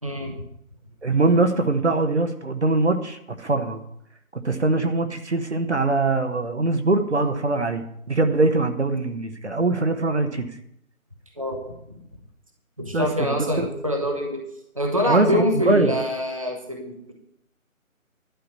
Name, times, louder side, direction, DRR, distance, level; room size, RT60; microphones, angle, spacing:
voice 1, 0.0-0.4 11.4-11.6 11.9-12.0 12.8-14.4 14.7-17.1, left 1 dB, 25° right, 1 dB, 1.0 m, -25 dB
voice 2, 1.0-3.8 4.3-10.5 12.9-13.3 13.6-13.7 15.1-16.0, right 3 dB, 50° right, 7 dB, 1.2 m, -22 dB
11.5 x 5.9 x 8.4 m, 0.75 s
figure-of-eight pair, 180°, 42 cm